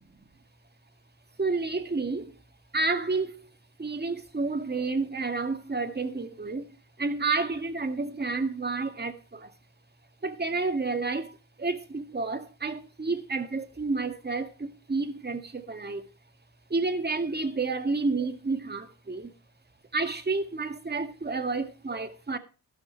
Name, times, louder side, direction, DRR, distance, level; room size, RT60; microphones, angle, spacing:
voice 1, 1.4-2.3 2.7-3.5 3.8-6.7 7.0-9.5 10.2-11.3 11.6-16.0 16.7-19.3 19.9-22.4, right 3 dB, 25° right, 2.1 m, -30 dB
12.5 x 12.0 x 3.2 m
supercardioid pair, 60°, 40 cm